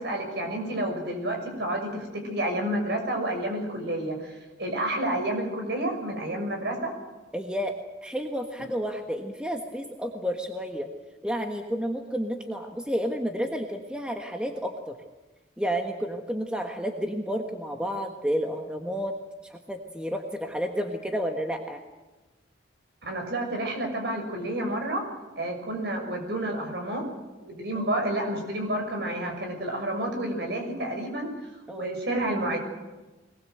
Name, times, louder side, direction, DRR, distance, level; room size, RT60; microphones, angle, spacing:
voice 1, 0.0-4.3 4.6-6.9 23.1-25.0 25.3-27.1 27.4-31.3 31.7-32.6, right 1 dB, 60° right, 3 dB, 6.3 m, -30 dB
voice 2, 7.3-10.9 11.2-15.0 15.6-19.2 19.4-21.8 27.7-28.0 31.7-31.9, equal, 5° right, 3 dB, 1.4 m, -31 dB
22.5 x 20.0 x 7.9 m, 1.1 s
head